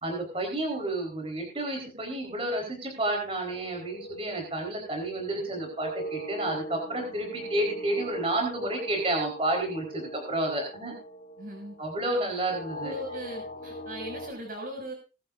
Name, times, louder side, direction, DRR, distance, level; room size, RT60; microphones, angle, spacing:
voice 1, 0.0-10.9 11.8-12.9, right 1 dB, 30° right, 2 dB, 4.2 m, -30 dB
sound 1, 3.5-14.3, right 1 dB, 60° left, 2.2 m, -41 dB
voice 2, 11.4-11.8 12.8-14.9, equal, 50° right, 1 dB, 6.2 m, -39 dB
20.5 x 11.0 x 2.6 m, 0.31 s
head